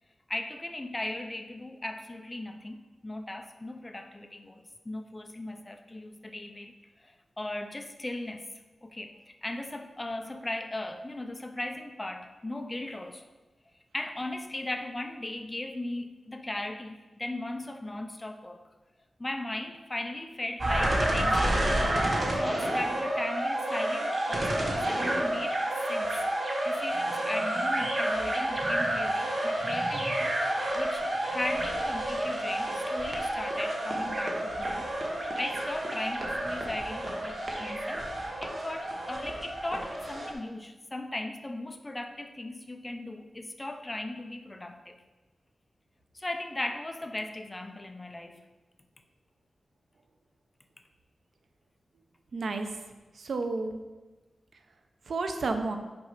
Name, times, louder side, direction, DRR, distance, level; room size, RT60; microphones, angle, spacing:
voice 1, 0.3-6.7 7.0-8.5 8.8-13.2 13.9-18.6 19.2-21.7 22.3-25.6 25.9-26.2 26.6-34.9 35.4-38.1 38.4-45.0 46.1-48.4, left 1 dB, 20° left, 6 dB, 0.5 m, -37 dB
sound 1, 20.6-40.3, right 1 dB, 40° right, 1.2 m, -30 dB
voice 2, 52.3-53.8 55.1-55.8, right 3 dB, 65° right, 6 dB, 0.6 m, -32 dB
6.1 x 4.9 x 5.7 m, 1.2 s
wide cardioid pair, 145°, 0 cm